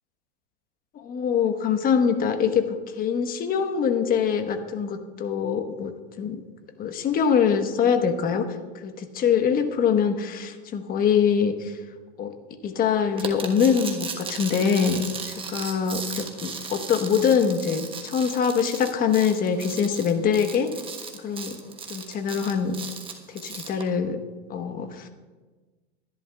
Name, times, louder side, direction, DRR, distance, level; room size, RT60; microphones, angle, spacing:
voice 1, 0.9-6.4 6.8-8.5 8.8-11.8 12.2-12.3 12.6-20.7 21.2-21.6 21.9-22.7 23.3-24.2 24.5-25.1, left 7 dB, 25° left, 7 dB, 1.2 m, -24 dB
sound 1, 13.2-23.8, right 5 dB, 15° right, 1.2 m, -36 dB
23.0 x 11.0 x 2.4 m, 1.3 s
hypercardioid pair, 125°, 33 cm